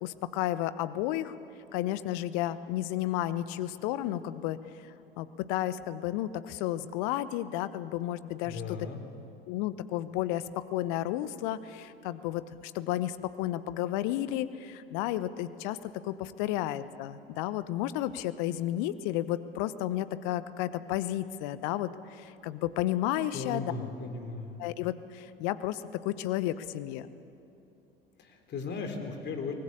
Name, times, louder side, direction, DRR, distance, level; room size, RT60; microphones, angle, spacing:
voice 1, 0.0-1.4 1.7-4.6 5.2-8.8 9.5-10.4 10.7-23.7 24.6-27.1, left 13 dB, 55° left, 15 dB, 1.1 m, -32 dB
voice 2, 8.4-9.0 23.3-24.5 28.2-29.5, left 4 dB, 35° left, 5 dB, 3.5 m, -37 dB
23.5 x 19.5 x 8.5 m, 2.7 s
figure-of-eight pair, 75°, 30 cm